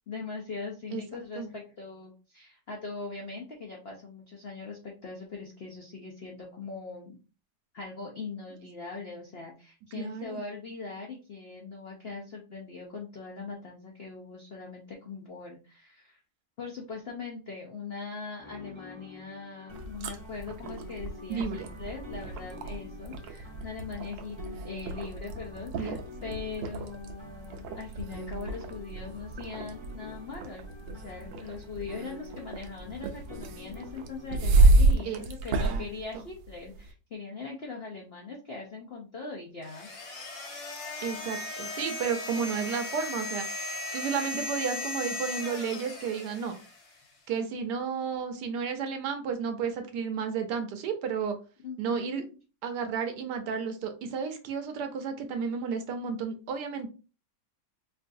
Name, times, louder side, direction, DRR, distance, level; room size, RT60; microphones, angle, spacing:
voice 1, 0.1-7.2 7.7-16.2 16.6-39.9 51.6-52.3, left 4 dB, 65° left, -1 dB, 0.6 m, -41 dB
voice 2, 9.9-10.4 21.3-21.7 25.8-26.0 35.0-35.2 35.6-35.9 41.0-43.5 43.9-46.6 47.3-51.4 51.8-52.2 52.6-56.9, right 6 dB, 70° right, 6 dB, 1.2 m, -32 dB
sound 1, 18.4-34.6, left 3 dB, 25° right, 0.7 m, -47 dB
sound 2, 19.7-36.9, right 3 dB, 90° right, 1.3 m, -30 dB
sound 3, 39.6-47.0, left 2 dB, 90° left, 2.0 m, -37 dB
4.6 x 2.5 x 2.6 m, 0.33 s
omnidirectional pair, 2.0 m